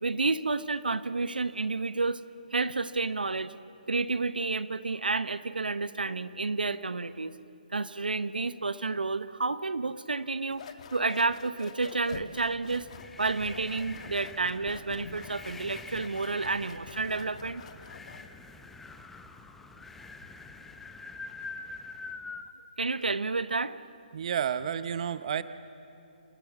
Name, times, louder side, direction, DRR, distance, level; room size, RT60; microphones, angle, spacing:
voice 1, 0.0-2.2 2.5-3.5 3.9-7.3 7.7-10.6 10.9-12.9 13.2-17.6 22.8-23.8, right 3 dB, 85° right, 14 dB, 0.8 m, -30 dB
sound 1, 10.5-18.3, left 6 dB, 45° left, 1.4 m, -47 dB
sound 2, 12.7-22.5, left 3 dB, 5° left, 0.8 m, -46 dB
voice 2, 24.1-25.4, right 8 dB, 45° right, 13 dB, 0.7 m, -30 dB
28.0 x 17.0 x 7.2 m, 2.7 s
figure-of-eight pair, 145°, 5 cm